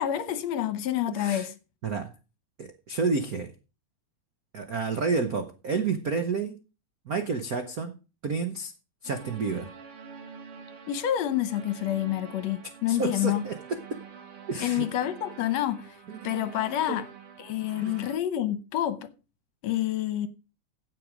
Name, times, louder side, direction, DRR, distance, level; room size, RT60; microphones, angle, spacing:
voice 1, 0.0-1.6 10.9-13.4 14.6-16.0 16.2-17.1 17.4-19.1 19.6-20.3, left 12 dB, 70° left, 2.0 m, -28 dB
voice 2, 1.1-1.5 1.8-2.1 2.6-3.5 4.5-6.6 7.1-7.9 8.2-8.7 9.0-9.7 12.9-13.6 14.5-14.8 16.1-16.3 16.9-17.0 17.8-17.9, right 4 dB, 90° right, 0.7 m, -30 dB
sound 1, 9.0-18.2, right 6 dB, 55° right, 2.3 m, -46 dB
16.5 x 6.6 x 5.1 m
omnidirectional pair, 3.3 m